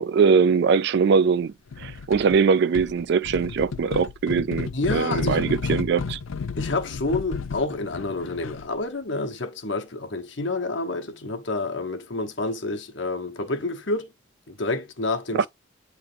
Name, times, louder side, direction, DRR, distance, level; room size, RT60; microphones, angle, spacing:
voice 1, 0.0-1.5 1.8-6.2 15.3-15.5, right 5 dB, 55° right, 0.3 m, -21 dB
sound 1, 1.7-2.4 2.7-8.8, left 5 dB, 90° left, 0.5 m, -32 dB
voice 2, 4.7-5.8 6.6-14.1 14.5-15.5, left 2 dB, 65° left, 1.2 m, -29 dB
8.8 x 3.3 x 3.4 m
head